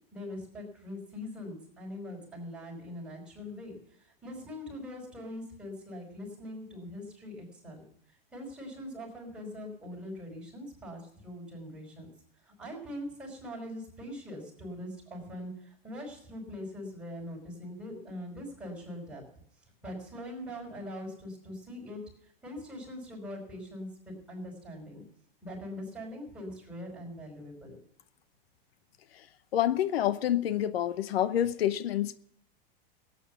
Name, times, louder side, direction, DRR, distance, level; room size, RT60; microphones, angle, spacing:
voice 1, 0.1-7.8 8.3-12.1 12.4-19.2 19.8-25.0 25.4-27.8, left 1 dB, 5° right, 5.3 m, -42 dB
voice 2, 29.5-32.1, left 11 dB, 90° left, 0.9 m, -28 dB
17.0 x 9.2 x 6.9 m
supercardioid pair, 160°, 29 cm